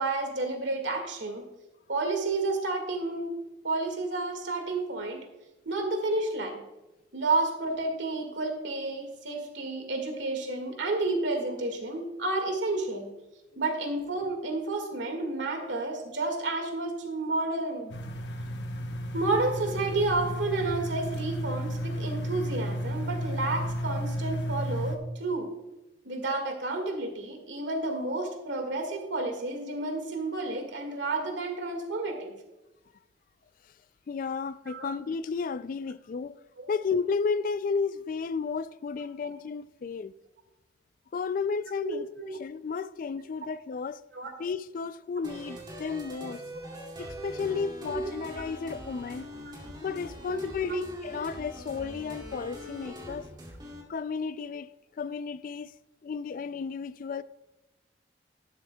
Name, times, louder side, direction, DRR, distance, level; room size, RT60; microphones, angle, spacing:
voice 1, 0.0-1.4 1.9-3.4 3.6-5.3 5.7-6.6 7.1-13.1 13.6-17.9 19.1-25.5 26.1-32.3 34.7-34.9 36.6-36.7 41.8-42.3 44.1-44.3 46.6-46.7 47.9-48.0 50.3-50.4 50.7-50.8, right 2 dB, 90° right, 1.9 m, -31 dB
sound 1, 17.9-25.0, equal, 75° left, 0.9 m, -33 dB
voice 2, 34.1-36.4 36.7-40.1 41.1-44.0 44.4-46.4 47.0-49.3 49.8-53.2 53.9-54.7 55.0-55.7 56.0-57.2, left 5 dB, 50° left, 0.3 m, -33 dB
sound 2, 45.2-53.8, equal, 25° right, 2.5 m, -42 dB
12.0 x 11.5 x 2.3 m
head